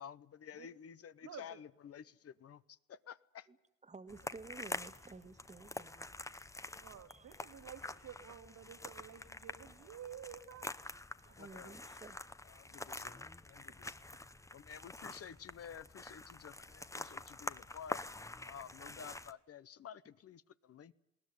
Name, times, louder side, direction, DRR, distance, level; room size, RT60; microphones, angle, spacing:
voice 1, 0.0-3.5 6.6-6.8 11.4-11.8 12.4-14.1 14.5-18.0 18.5-20.9, left 8 dB, 50° left, 0.9 m, -52 dB
voice 2, 3.8-6.1 6.3-6.5 7.1-7.3 11.2-12.3, right 3 dB, 25° right, 1.6 m, -53 dB
sound 1, 4.1-19.3, left 2 dB, 10° left, 0.8 m, -47 dB
voice 3, 6.8-10.7 11.3-11.4, right 9 dB, 65° right, 2.3 m, -51 dB
20.5 x 18.0 x 9.6 m
cardioid pair, 90°, 30 cm